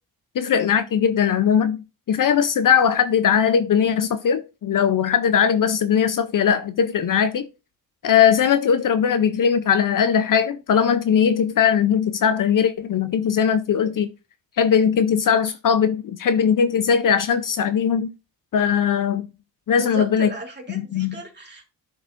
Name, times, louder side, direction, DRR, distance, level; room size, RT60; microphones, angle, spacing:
voice 1, 0.4-1.8 2.1-7.5 8.0-14.1 14.6-18.1 18.5-19.3 19.7-20.3 20.9-21.2, left 7 dB, 50° left, 0.6 m, -19 dB
voice 2, 19.7-21.6, right 2 dB, 25° right, 3.0 m, -35 dB
11.0 x 4.8 x 2.5 m
cardioid pair, 90°, 42 cm